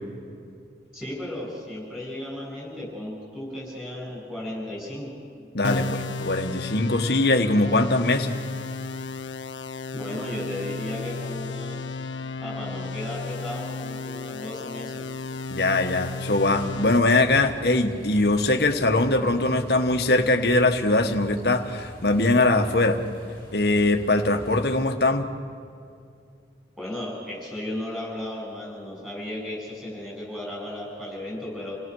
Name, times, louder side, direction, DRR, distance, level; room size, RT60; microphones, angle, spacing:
voice 1, 0.9-5.1 9.9-11.9 12.4-15.0 26.8-31.8, left 1 dB, 5° right, -4 dB, 6.9 m, -35 dB
voice 2, 5.5-8.4 15.5-23.0 23.5-25.3, left 2 dB, 60° left, 6 dB, 1.4 m, -22 dB
sound 1, 5.6-17.0, left 3 dB, 90° left, 0.8 m, -33 dB
sound 2, 16.2-24.8, equal, 30° right, 7.0 m, -45 dB
28.5 x 17.5 x 6.3 m, 2.4 s
head